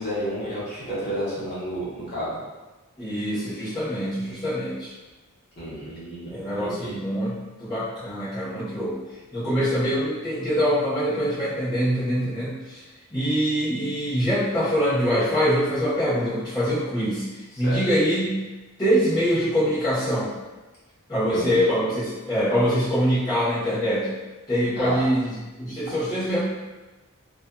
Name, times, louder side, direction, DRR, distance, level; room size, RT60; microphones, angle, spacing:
voice 1, 0.0-2.4 5.6-7.0 17.6-17.8 21.3-21.6 24.7-25.1, equal, 45° left, -11 dB, 1.1 m, -31 dB
voice 2, 3.0-4.9 6.2-9.0 9.3-12.8 13.1-18.4 18.8-20.3 21.1-24.1 24.5-26.4, equal, 20° left, -15 dB, 1.0 m, -24 dB
2.5 x 2.4 x 2.3 m, 1.2 s
head